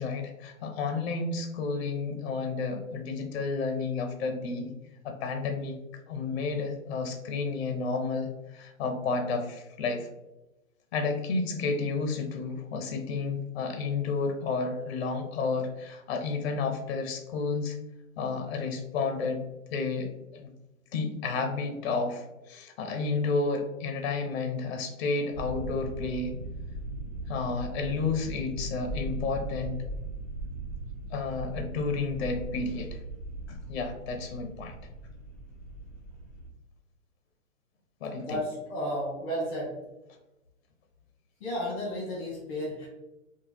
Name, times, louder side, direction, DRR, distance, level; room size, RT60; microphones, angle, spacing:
voice 1, 0.0-4.7 5.0-5.8 6.1-10.1 10.9-17.8 18.2-19.4 19.7-20.5 20.9-26.3 27.3-29.8 31.1-33.0 33.5-34.7 38.0-38.4, left 4 dB, 50° left, 5 dB, 0.5 m, -31 dB
sound 1, 25.3-36.5, right 2 dB, ahead, 1.4 m, -39 dB
voice 2, 38.0-39.7 41.4-42.9, equal, 25° left, -4 dB, 0.9 m, -33 dB
2.7 x 2.2 x 3.2 m, 0.99 s
hypercardioid pair, 145°, 41 cm